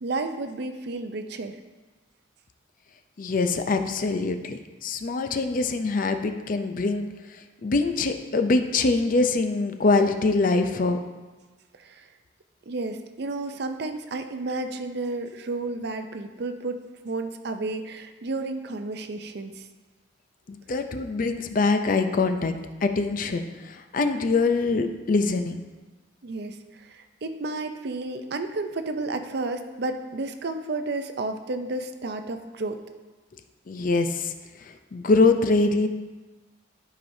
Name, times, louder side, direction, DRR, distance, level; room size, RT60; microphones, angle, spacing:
voice 1, 0.0-1.6 11.8-12.1 12.7-19.7 26.2-32.8, right 2 dB, 60° right, 8 dB, 0.5 m, -32 dB
voice 2, 3.2-7.1 7.6-11.0 20.5-22.5 22.8-25.6 33.7-34.3 34.6-35.9, left 3 dB, 45° left, 7 dB, 0.5 m, -24 dB
12.5 x 5.0 x 2.7 m, 1.3 s
head